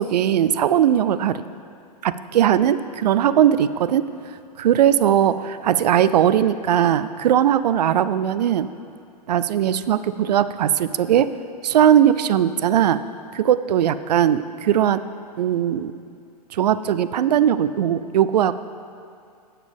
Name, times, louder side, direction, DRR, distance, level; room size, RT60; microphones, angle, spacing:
voice 1, 0.0-1.4 2.0-4.1 4.6-8.7 9.3-11.3 11.6-13.0 13.3-15.0 15.4-15.9 16.5-18.5, right 10 dB, 80° right, 14 dB, 0.4 m, -19 dB
11.0 x 7.4 x 3.5 m, 2.4 s
hypercardioid pair, 115°, 21 cm